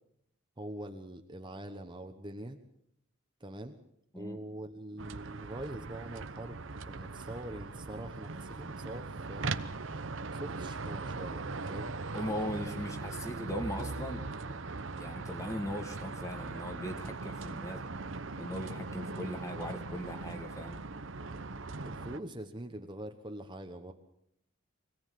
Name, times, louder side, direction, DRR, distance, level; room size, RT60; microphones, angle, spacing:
voice 1, 0.6-2.6 3.4-3.8 4.2-6.6 6.9-9.5 10.3-11.9 12.5-12.6 21.8-23.9, right 1 dB, 25° right, 5 dB, 1.2 m, -43 dB
sound 1, 5.0-22.2, right 3 dB, 70° right, 1.1 m, -40 dB
voice 2, 12.1-14.2 15.0-17.8 18.4-20.8, equal, 15° left, 5 dB, 2.5 m, -39 dB
25.0 x 17.0 x 7.7 m, 0.75 s
head